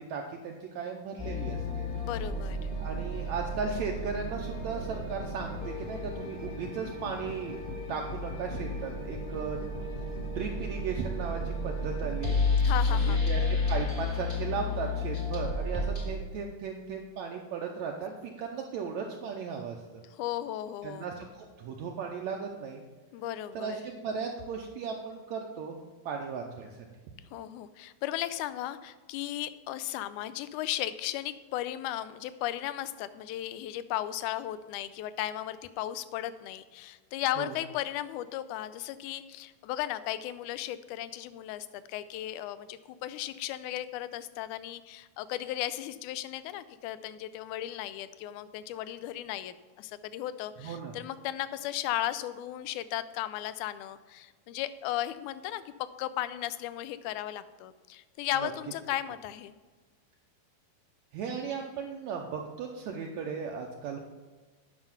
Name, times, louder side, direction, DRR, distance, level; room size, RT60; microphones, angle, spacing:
voice 1, 0.0-1.9 2.8-7.6 7.9-9.7 10.3-12.4 12.9-20.0 20.8-22.8 23.5-25.8 26.0-26.7 37.4-37.5 50.6-50.9 58.4-58.5 61.1-64.0, right 5 dB, 75° right, 1 dB, 1.8 m, -36 dB
sound 1, 1.2-16.1, left 3 dB, 35° left, 0.9 m, -32 dB
voice 2, 1.9-2.7 12.6-13.2 20.1-21.1 23.1-23.9 27.3-55.7 56.0-59.5, left 13 dB, 80° left, 14 dB, 1.9 m, -36 dB
9.6 x 5.9 x 5.9 m, 1.3 s
omnidirectional pair, 3.8 m